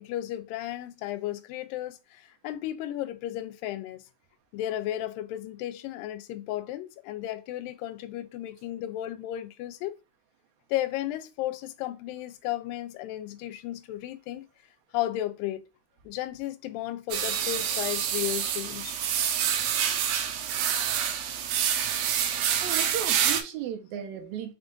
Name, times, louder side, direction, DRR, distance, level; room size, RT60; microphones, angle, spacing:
voice 1, 0.0-4.0 4.5-10.0 10.7-14.5 14.9-15.7 16.1-19.0, left 13 dB, 85° left, 2.3 m, -34 dB
sound 1, 17.1-23.4, right 9 dB, 85° right, 2.4 m, -27 dB
voice 2, 22.6-24.5, right 9 dB, 70° right, 1.9 m, -35 dB
5.5 x 2.5 x 3.8 m
omnidirectional pair, 4.0 m